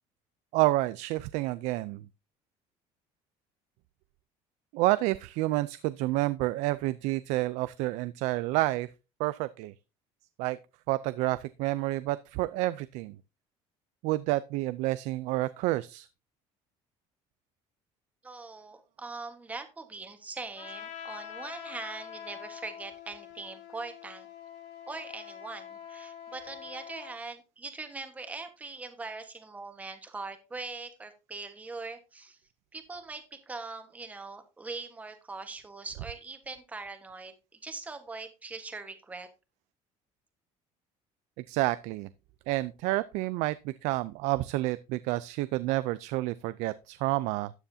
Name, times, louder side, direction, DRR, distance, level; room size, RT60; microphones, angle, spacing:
voice 1, 0.5-2.1 4.7-8.9 9.2-9.7 10.4-10.6 10.9-13.2 14.0-16.1 41.5-42.1 42.5-47.5, right 18 dB, 75° right, 0.5 m, -29 dB
voice 2, 18.2-24.3 24.9-32.4 32.7-39.3, right 3 dB, 10° right, 1.3 m, -42 dB
Trumpet, 20.6-27.2, left 9 dB, 75° left, 2.9 m, -45 dB
13.0 x 9.2 x 2.7 m
cardioid pair, 175°, 12 cm